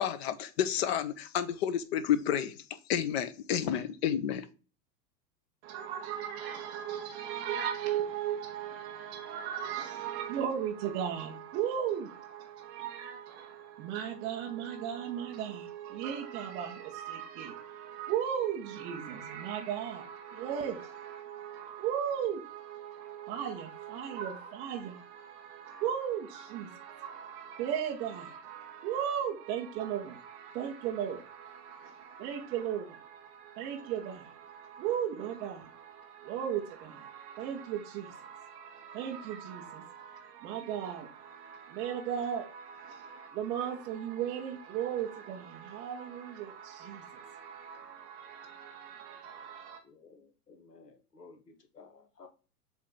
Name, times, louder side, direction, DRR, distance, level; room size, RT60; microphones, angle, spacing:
voice 1, 0.0-2.5 2.9-4.5, left 9 dB, 40° left, 0.8 m, -30 dB
voice 2, 5.6-49.8, right 9 dB, 10° right, 0.4 m, -36 dB
voice 3, 49.8-52.3, left 4 dB, 75° left, 1.6 m, -55 dB
7.3 x 3.5 x 3.8 m
figure-of-eight pair, 95°, 49 cm